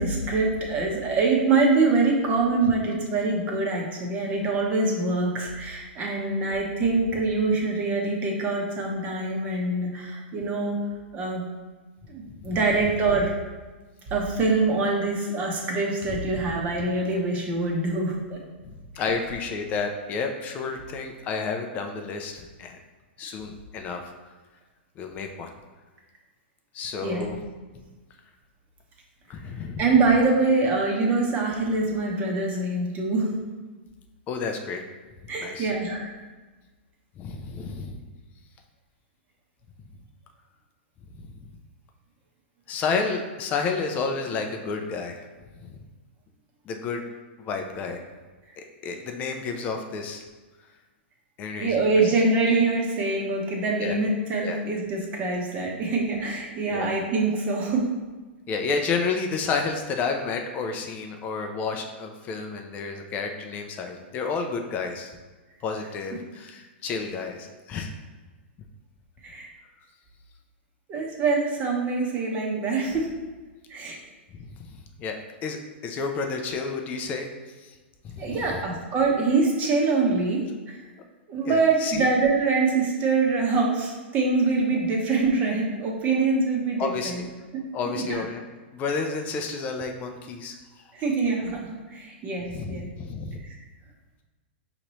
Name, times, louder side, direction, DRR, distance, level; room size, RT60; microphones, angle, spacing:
voice 1, 0.0-10.8 11.1-11.4 12.1-13.3 14.1-18.4 27.0-27.3 29.8-33.4 35.3-36.1 51.6-57.9 69.2-69.5 70.9-73.1 73.7-74.0 78.2-80.8 81.3-87.3 87.5-87.6 87.9-88.2 90.9-92.9 93.4-93.5, right 3 dB, 25° right, -1 dB, 0.9 m, -24 dB
voice 2, 18.6-22.8 23.2-24.3 25.0-25.5 26.7-27.4 27.7-27.8 29.3-29.8 34.3-34.8 35.4-35.7 37.2-38.0 42.7-45.3 45.6-45.8 46.7-47.1 47.4-48.0 48.6-50.2 51.4-52.0 53.8-54.0 54.4-54.6 56.7-56.9 58.5-65.1 65.6-67.9 74.6-74.7 75.0-77.3 77.6-77.8 78.0-78.6 81.5-82.1 86.8-87.1 87.7-88.4 88.7-90.8 92.5-93.4, left 4 dB, 25° left, 4 dB, 0.4 m, -31 dB
5.1 x 2.9 x 3.0 m, 1.3 s
hypercardioid pair, 145°, 6 cm